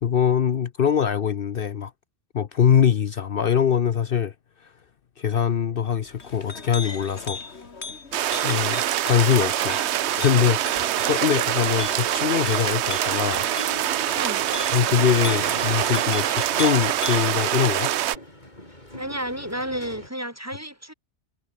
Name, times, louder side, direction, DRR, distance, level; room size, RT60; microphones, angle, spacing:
voice 1, 0.0-1.9 2.3-4.3 5.2-7.4 8.4-9.8 10.2-13.5 14.7-17.9, left 8 dB, 60° left, 0.9 m, -23 dB
Chink clink, 6.0-17.4, left 4 dB, 75° left, 2.4 m, -38 dB
sound 1, 8.1-18.2, right 12 dB, 80° right, 0.9 m, -25 dB
sound 2, 13.4-20.1, left 1 dB, 40° left, 7.6 m, -40 dB
voice 2, 18.9-20.9, equal, 15° right, 1.7 m, -32 dB
omnidirectional pair, 1.1 m